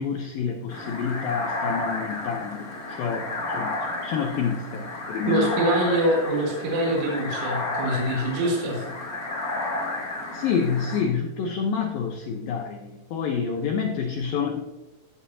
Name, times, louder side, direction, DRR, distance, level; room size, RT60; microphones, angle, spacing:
voice 1, 0.0-5.5 10.3-14.6, left 6 dB, 90° left, 2 dB, 2.0 m, -28 dB
sound 1, 0.7-11.0, left 2 dB, 40° left, 1.3 m, -32 dB
voice 2, 5.2-8.8, right 1 dB, 80° right, -1 dB, 4.2 m, -24 dB
16.0 x 8.4 x 2.7 m, 1.1 s
omnidirectional pair, 5.4 m